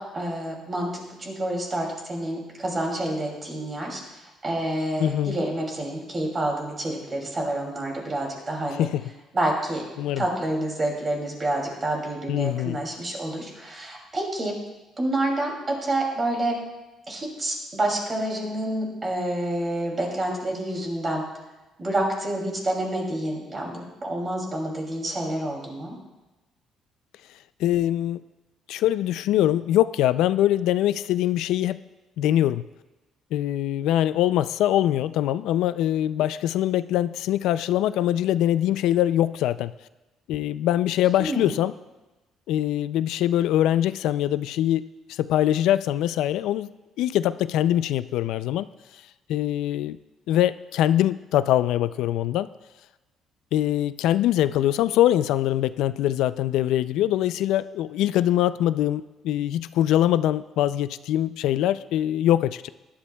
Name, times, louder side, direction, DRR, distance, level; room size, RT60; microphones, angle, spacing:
voice 1, 0.0-8.9 9.3-9.8 10.2-14.6 15.0-16.6 17.1-21.2 21.8-26.0 41.2-41.5, right 1 dB, 25° right, -1 dB, 2.6 m, -28 dB
voice 2, 5.0-5.4 8.7-9.0 10.0-10.2 12.3-12.8 27.6-28.2 28.7-31.8 32.2-32.6 33.3-39.7 40.3-41.7 42.5-46.7 47.0-48.7 49.3-50.0 50.3-52.5 53.5-62.7, left 12 dB, 85° left, 14 dB, 0.3 m, -23 dB
18.5 x 11.0 x 2.3 m, 1.1 s
cardioid pair, 165°, 0 cm